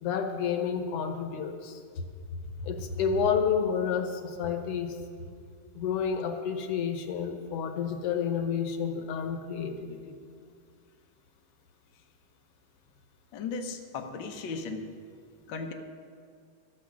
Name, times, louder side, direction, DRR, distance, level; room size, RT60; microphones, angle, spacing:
voice 1, 0.0-1.8 2.6-5.0 5.7-10.1, left 7 dB, 65° left, 6 dB, 1.6 m, -30 dB
voice 2, 13.3-14.9 15.5-15.7, left 4 dB, 85° left, 3 dB, 1.0 m, -36 dB
12.5 x 10.0 x 6.2 m, 2.2 s
omnidirectional pair, 3.3 m